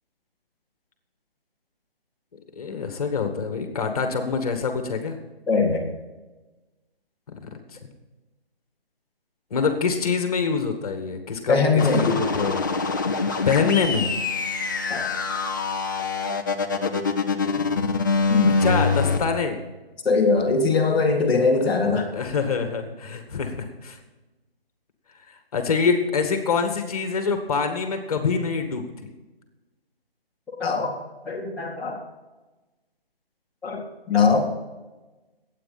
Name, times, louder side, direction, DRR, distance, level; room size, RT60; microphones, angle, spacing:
voice 1, 2.6-5.2 7.4-7.5 9.5-12.6 13.5-14.1 17.5-17.9 18.5-19.6 21.6-21.8 22.1-24.0 25.3-28.8, left 5 dB, 40° left, 6 dB, 2.0 m, -25 dB
voice 2, 5.5-5.9 11.5-12.4 14.9-15.1 18.3-18.5 20.0-22.1 30.6-30.9 31.2-32.0 33.6-34.5, left 4 dB, 5° left, -11 dB, 1.4 m, -21 dB
sound 1, 11.8-19.2, left 4 dB, 20° left, 0.6 m, -24 dB
22.5 x 9.2 x 4.3 m, 1.1 s
hypercardioid pair, 165°, 30 cm